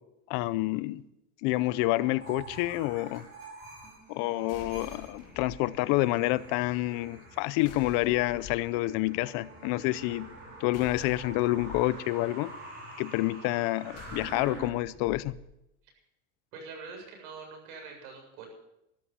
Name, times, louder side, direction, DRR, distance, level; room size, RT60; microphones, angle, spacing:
voice 1, 0.3-1.0 1.4-3.3 4.1-10.3 10.6-12.5 13.0-15.3, left 18 dB, 50° left, 17 dB, 0.7 m, -28 dB
sound 1, 1.5-14.7, right 2 dB, 25° right, 5.8 m, -47 dB
sound 2, 4.5-5.6 7.6-8.7 10.7-11.8 13.9-15.4, left 5 dB, 30° left, 2.3 m, -47 dB
voice 2, 16.5-18.5, right 4 dB, 75° right, 2 dB, 7.8 m, -44 dB
13.5 x 12.5 x 7.3 m, 0.85 s
supercardioid pair, 155°, 46 cm